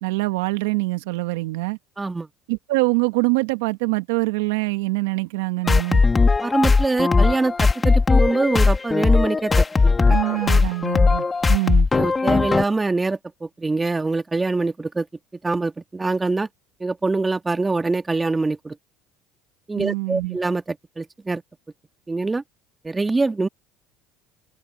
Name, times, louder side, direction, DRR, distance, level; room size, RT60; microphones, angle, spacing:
voice 1, 0.0-1.8 2.5-6.0 10.1-11.9 19.7-20.4, right 23 dB, 80° right, 1.6 m, -24 dB
voice 2, 2.0-2.3 6.4-10.5 11.9-15.1 15.4-16.5 16.8-18.8 19.7-21.4 22.1-22.4 22.8-23.5, right 3 dB, 15° right, 1.8 m, -24 dB
sound 1, 5.7-12.6, left 4 dB, 20° left, 2.1 m, -18 dB
supercardioid pair, 85°, 0 cm